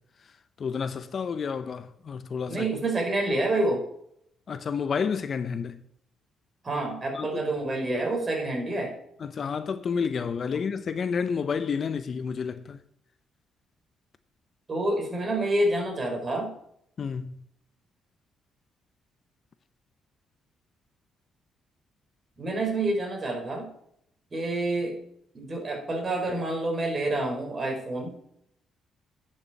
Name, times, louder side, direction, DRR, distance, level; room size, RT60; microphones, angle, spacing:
voice 1, 0.6-2.6 4.5-5.8 7.1-7.4 9.2-12.8 17.0-17.4, left 6 dB, 50° left, 0.7 m, -30 dB
voice 2, 2.5-3.9 6.6-9.0 14.7-16.5 22.4-23.7 24.3-25.0 25.3-28.1, right 2 dB, 35° right, 4.6 m, -28 dB
10.5 x 6.9 x 6.9 m
cardioid pair, 90°, 0 cm